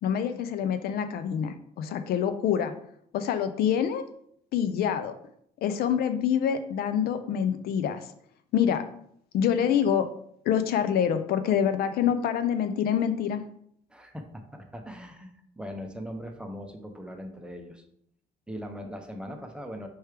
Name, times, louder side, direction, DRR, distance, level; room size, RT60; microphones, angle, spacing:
voice 1, 0.0-2.7 3.1-4.0 4.5-5.1 5.6-8.1 8.5-8.8 9.3-10.1 10.5-13.4, left 8 dB, 65° left, 9 dB, 0.4 m, -26 dB
voice 2, 13.9-17.8 18.5-19.9, equal, 5° right, 4 dB, 0.6 m, -40 dB
4.5 x 3.3 x 3.2 m, 0.68 s
cardioid pair, 110°, 17 cm